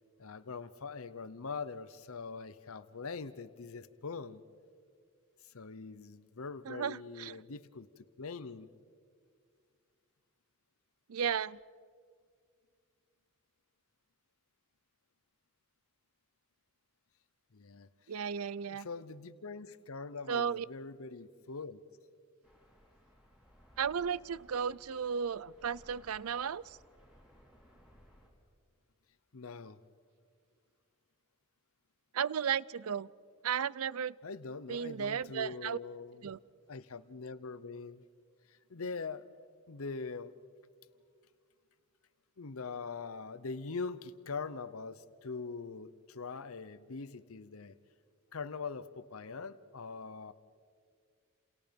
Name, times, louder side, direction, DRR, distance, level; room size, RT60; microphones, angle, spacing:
voice 1, 0.2-4.4 5.4-8.7 17.5-17.9 18.7-21.8 29.3-29.8 34.2-36.4 36.7-38.0 38.5-39.3 39.7-40.3 42.4-47.7 48.3-50.3, left 4 dB, 80° left, 14 dB, 0.8 m, -43 dB
voice 2, 6.7-7.4 11.1-11.6 18.1-18.9 20.3-20.7 23.8-26.8 32.1-33.1 33.4-34.1 34.7-35.8 36.2-36.4, right 7 dB, 90° right, 21 dB, 0.5 m, -34 dB
sound 1, 22.4-28.3, equal, 5° right, 4.3 m, -61 dB
29.5 x 28.5 x 5.3 m, 2.1 s
head